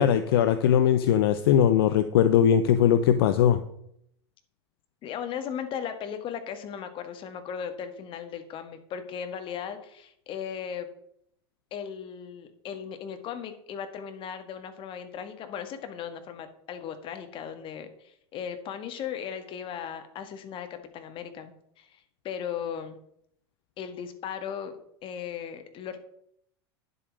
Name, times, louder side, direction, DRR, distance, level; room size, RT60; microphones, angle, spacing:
voice 1, 0.0-3.6, left 9 dB, 60° left, 11 dB, 0.6 m, -20 dB
voice 2, 5.0-10.9 11.7-20.7 20.9-23.0 23.8-24.8 25.0-26.0, left 8 dB, 40° left, 8 dB, 1.6 m, -37 dB
9.8 x 7.7 x 5.1 m, 0.70 s
figure-of-eight pair, 80°, 14 cm